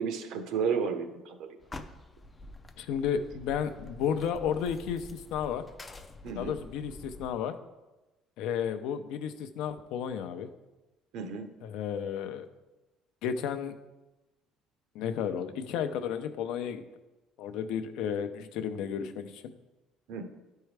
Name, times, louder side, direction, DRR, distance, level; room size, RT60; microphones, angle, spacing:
voice 1, 0.0-1.4 6.2-6.5 11.1-11.5 20.1-20.3, right 6 dB, 65° right, 7 dB, 0.8 m, -32 dB
sound 1, 1.6-7.3, left 2 dB, 15° left, 0.4 m, -47 dB
voice 2, 2.8-5.6 6.4-7.5 8.4-10.5 11.6-12.5 13.2-13.7 14.9-16.8 17.4-19.5, left 8 dB, 75° left, 9 dB, 0.6 m, -32 dB
11.5 x 4.5 x 3.3 m, 1.1 s
cardioid pair, 165°, 0 cm